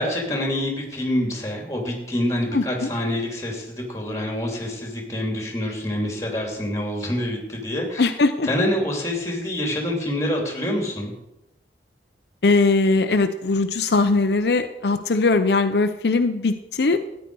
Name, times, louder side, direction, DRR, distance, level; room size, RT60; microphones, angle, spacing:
voice 1, 0.0-8.1 8.4-11.1, left 1 dB, 15° left, 1 dB, 2.6 m, -26 dB
voice 2, 2.5-2.9 8.0-8.5 12.4-17.0, left 3 dB, 70° left, 7 dB, 0.6 m, -20 dB
13.5 x 9.5 x 4.7 m, 0.92 s
head